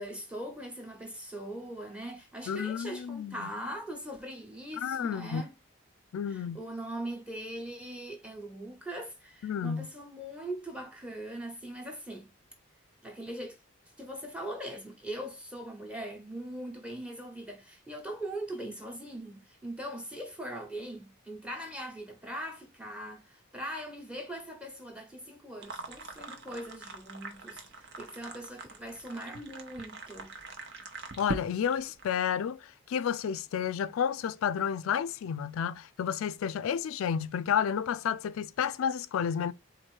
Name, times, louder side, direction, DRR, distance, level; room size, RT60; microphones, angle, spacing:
voice 1, 0.0-5.5 6.3-12.3 13.0-13.6 14.0-30.3, right 1 dB, 5° right, 1.0 m, -41 dB
voice 2, 2.5-3.5 4.8-5.4 6.1-6.6 9.4-9.9 31.2-39.5, left 8 dB, 85° left, 0.3 m, -31 dB
sound 1, 25.6-32.1, right 3 dB, 55° right, 0.9 m, -42 dB
4.3 x 2.6 x 4.5 m
head